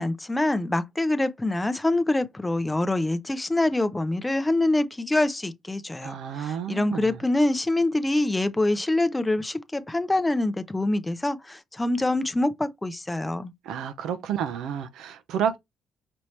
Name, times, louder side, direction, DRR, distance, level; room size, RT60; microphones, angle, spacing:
voice 1, 0.0-13.5, left 2 dB, 15° left, 0.5 m, -25 dB
voice 2, 6.0-7.2 13.6-15.6, right 8 dB, 85° right, 0.6 m, -30 dB
5.2 x 2.9 x 3.2 m
cardioid pair, 90°, 0 cm